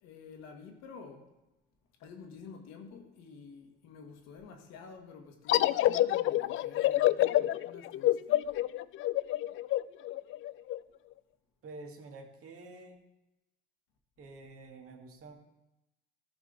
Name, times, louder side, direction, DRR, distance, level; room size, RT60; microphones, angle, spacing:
voice 1, 0.0-1.3 2.0-8.5, left 5 dB, 60° left, 1.7 m, -50 dB
sound 1, 5.5-10.8, left 14 dB, 40° left, 0.4 m, -27 dB
voice 2, 11.6-13.0 14.2-15.3, right 2 dB, 45° right, 1.8 m, -48 dB
14.0 x 6.3 x 3.9 m
figure-of-eight pair, 50°, 31 cm